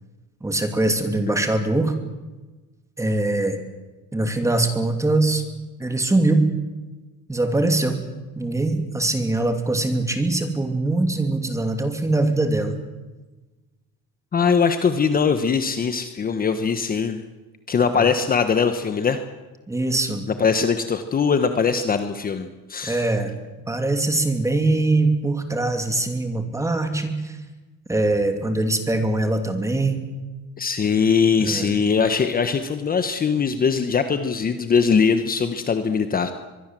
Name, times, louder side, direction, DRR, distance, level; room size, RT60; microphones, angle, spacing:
voice 1, 0.4-1.9 3.0-3.6 4.1-5.4 5.8-6.5 7.3-8.0 8.4-12.8 17.9-18.1 19.7-20.3 22.8-23.3 23.7-27.4 27.9-30.1 31.4-31.7, right 2 dB, 10° right, 6 dB, 2.8 m, -22 dB
voice 2, 14.3-17.2 17.7-19.2 20.3-23.0 30.6-36.3, left 6 dB, 30° left, 9 dB, 1.2 m, -21 dB
23.5 x 22.0 x 7.7 m, 1.2 s
cardioid pair, 150°, 31 cm